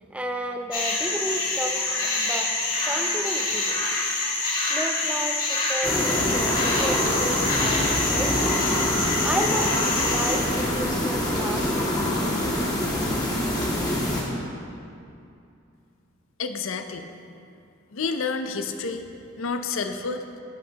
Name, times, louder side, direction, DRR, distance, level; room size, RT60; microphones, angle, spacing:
voice 1, 0.0-1.8 2.2-2.5 2.8-3.8 4.7-8.5 9.2-12.1 12.4-12.7, right 1 dB, 5° right, 4 dB, 0.5 m, -32 dB
sound 1, 0.7-10.4, left 3 dB, 45° left, 1.9 m, -26 dB
sound 2, 5.8-14.2, left 1 dB, 20° left, 1.3 m, -25 dB
voice 2, 16.4-17.1 17.9-19.1 19.4-20.2, left 4 dB, 80° left, 7 dB, 0.6 m, -29 dB
11.0 x 8.5 x 2.9 m, 2.6 s
head